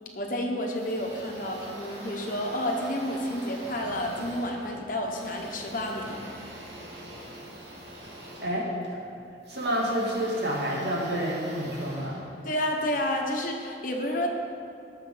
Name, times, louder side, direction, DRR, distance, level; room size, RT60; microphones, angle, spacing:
voice 1, 0.1-6.2 12.4-14.3, left 1 dB, 45° left, 1 dB, 1.2 m, -30 dB
sound 1, 0.7-13.0, right 1 dB, 75° right, 2.1 m, -44 dB
voice 2, 9.5-12.2, equal, 60° right, -3 dB, 2.3 m, -28 dB
19.0 x 6.7 x 4.0 m, 2.6 s
head